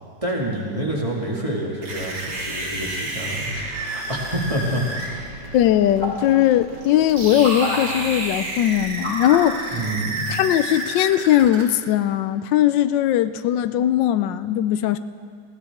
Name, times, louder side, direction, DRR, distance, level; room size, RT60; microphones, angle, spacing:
voice 1, 0.2-5.3 9.7-10.2, right 1 dB, 20° right, -3 dB, 2.0 m, -27 dB
sound 1, 1.8-11.6, right 2 dB, 70° right, 2.5 m, -31 dB
voice 2, 5.5-9.8 10.3-15.0, left 12 dB, 85° left, 12 dB, 1.3 m, -19 dB
sound 2, 6.0-6.3 7.4-7.8 9.0-9.5 10.4-10.5, left 2 dB, 45° left, 3.0 m, -27 dB
20.0 x 15.5 x 3.6 m, 2.1 s
omnidirectional pair, 1.9 m